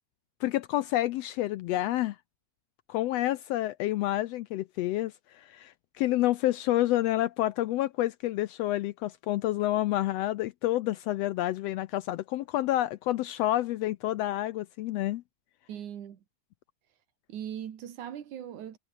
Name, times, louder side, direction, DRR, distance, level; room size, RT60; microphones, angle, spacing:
voice 1, 0.4-2.2 2.9-15.2, left 15 dB, 80° left, 1.5 m, -29 dB
voice 2, 15.7-16.2 17.3-18.8, right 10 dB, 85° right, 3.3 m, -39 dB
omnidirectional pair, 3.4 m